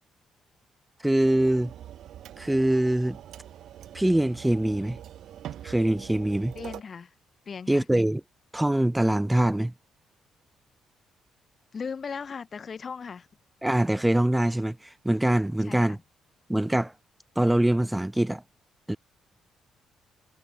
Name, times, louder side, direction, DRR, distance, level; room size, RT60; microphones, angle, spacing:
voice 1, 1.0-1.7 2.4-3.2 3.9-5.0 5.6-6.5 7.7-8.2 8.5-9.7 13.6-16.0 16.5-16.9 17.4-18.4 18.9-19.0, right 1 dB, 10° right, 0.9 m, -23 dB
sound 1, 1.2-6.8, right 11 dB, 75° right, 0.9 m, -43 dB
voice 2, 6.5-7.1 7.5-7.8 11.7-13.3 15.6-16.0, left 6 dB, 40° left, 2.4 m, -37 dB
cardioid pair, 90°, 0 cm